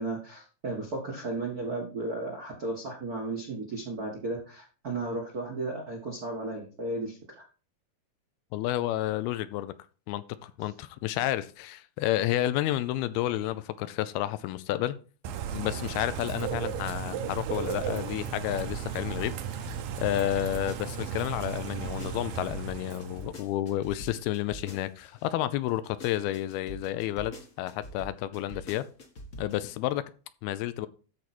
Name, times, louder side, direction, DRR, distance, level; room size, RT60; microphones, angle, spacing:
voice 1, 0.0-7.4, right 2 dB, 55° right, 1.0 m, -34 dB
voice 2, 8.5-9.7 10.1-15.0 15.5-19.7 20.0-28.8 29.4-30.0 30.4-30.9, left 14 dB, 80° left, 2.5 m, -31 dB
Bird / Rain, 15.2-23.4, right 8 dB, 75° right, 2.4 m, -35 dB
sound 1, 19.0-25.2 25.7-29.7, equal, 55° left, 0.9 m, -44 dB
13.5 x 4.6 x 4.3 m
omnidirectional pair, 4.5 m